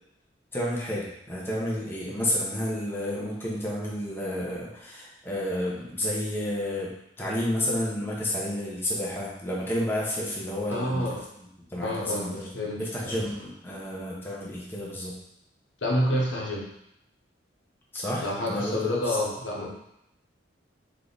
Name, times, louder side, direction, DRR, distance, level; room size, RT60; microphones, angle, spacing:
voice 1, 0.5-6.9 7.2-11.2 11.7-12.5 12.8-15.1 17.9-19.2 19.5-19.7, left 1 dB, 10° left, -6 dB, 1.0 m, -31 dB
voice 2, 10.7-11.2 11.8-12.3 12.5-13.2 15.8-16.7 18.2-19.7, left 1 dB, 90° left, -3 dB, 1.2 m, -28 dB
3.7 x 3.4 x 4.0 m, 0.79 s
head